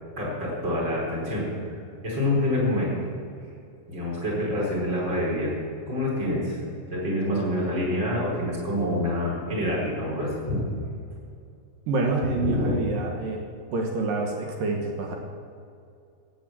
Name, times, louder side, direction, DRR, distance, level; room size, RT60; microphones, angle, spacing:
voice 1, 0.2-1.5 2.0-2.9 3.9-5.5 5.9-6.6 6.9-10.6 12.3-12.7, left 1 dB, 30° right, -5 dB, 4.8 m, -26 dB
voice 2, 11.9-13.4 13.7-15.2, right 3 dB, 70° right, 1 dB, 2.9 m, -27 dB
16.5 x 8.6 x 7.5 m, 2.4 s
omnidirectional pair, 4.3 m